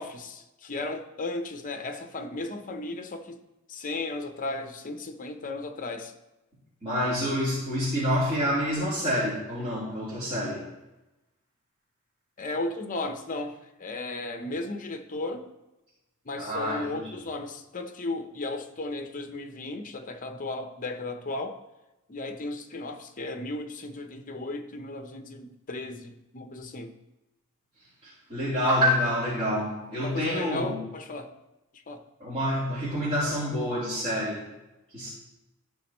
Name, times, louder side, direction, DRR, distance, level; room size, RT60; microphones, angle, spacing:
voice 1, 0.0-3.4 3.7-6.1 12.4-15.4 16.3-21.6 22.1-26.9 30.0-31.3 31.9-32.0, left 2 dB, 40° left, 7 dB, 0.7 m, -35 dB
voice 2, 6.8-10.6 16.4-17.2 28.0-30.8 32.2-34.4 34.9-35.1, equal, 30° right, -12 dB, 3.3 m, -27 dB
15.0 x 5.1 x 3.0 m, 0.99 s
head